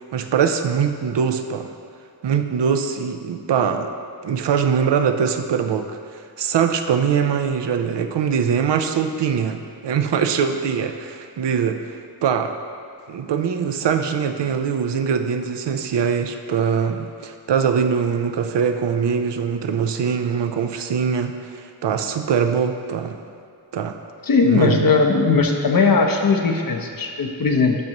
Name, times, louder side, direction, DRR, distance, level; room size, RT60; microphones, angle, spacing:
voice 1, 0.1-1.7 2.2-3.9 4.2-5.9 6.4-12.5 13.1-23.2 23.7-24.0 24.4-24.9, right 7 dB, 80° right, 7 dB, 0.6 m, -22 dB
voice 2, 24.3-27.8, left 4 dB, 55° left, 3 dB, 0.7 m, -18 dB
12.0 x 5.3 x 3.0 m, 2.3 s
wide cardioid pair, 115°, 42 cm